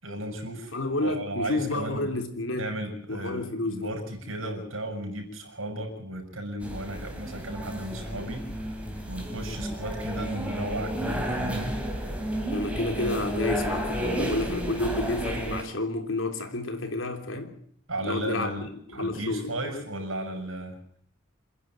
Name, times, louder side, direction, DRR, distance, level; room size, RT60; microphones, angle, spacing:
voice 1, 0.0-0.7 1.0-2.1 2.5-8.7 9.1-11.8 17.9-20.8, right 1 dB, 80° right, 6.7 m, -35 dB
voice 2, 0.7-2.7 3.1-3.9 12.5-17.6 18.0-19.5, left 2 dB, 70° left, 3.4 m, -30 dB
sound 1, 6.6-15.6, equal, 5° right, 3.7 m, -32 dB
28.0 x 10.5 x 9.1 m
head